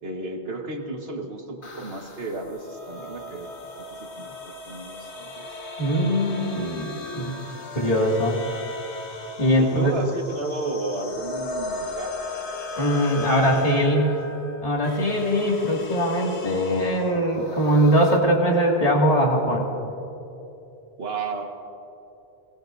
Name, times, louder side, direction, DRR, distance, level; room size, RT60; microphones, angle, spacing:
voice 1, 0.0-3.5 3.8-5.5 9.6-12.2 13.1-14.1 21.0-21.4, right 3 dB, 65° right, 3 dB, 1.6 m, -33 dB
sound 1, 1.6-18.2, left 3 dB, 80° left, 1.6 m, -37 dB
voice 2, 5.8-6.9 7.2-7.3 7.7-8.4 9.4-9.9 12.8-14.2 14.6-19.7, equal, 35° left, -2 dB, 2.2 m, -21 dB
29.5 x 19.0 x 2.6 m, 2.9 s
omnidirectional pair, 1.1 m